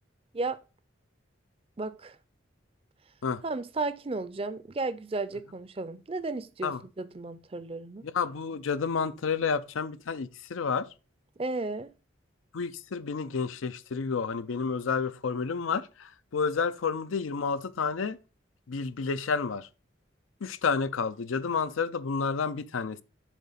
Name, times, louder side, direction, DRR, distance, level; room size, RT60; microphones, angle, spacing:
voice 1, 1.8-2.2 3.4-8.0 11.4-11.9, right 3 dB, 30° right, 0.5 m, -34 dB
voice 2, 8.0-10.9 12.5-18.2 18.7-19.7 20.4-23.0, left 5 dB, 90° left, 0.5 m, -30 dB
7.4 x 3.7 x 5.7 m
head